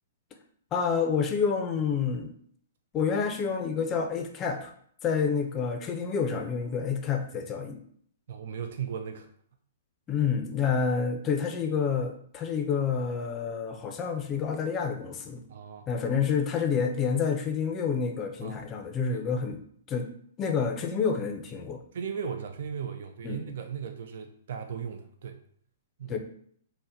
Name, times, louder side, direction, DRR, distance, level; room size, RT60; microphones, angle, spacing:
voice 1, 0.7-2.3 2.9-4.7 5.0-7.8 10.1-15.4 15.9-19.6 19.9-20.1 20.4-21.8 23.2-23.4 26.1-26.2, left 6 dB, 25° left, 4 dB, 0.4 m, -28 dB
voice 2, 8.3-9.3 15.5-15.9 18.4-18.7 19.1-19.2 21.9-25.4 26.0-26.2, right 7 dB, 65° right, 6 dB, 0.3 m, -37 dB
2.7 x 2.1 x 3.4 m, 0.62 s
hypercardioid pair, 140°, 0 cm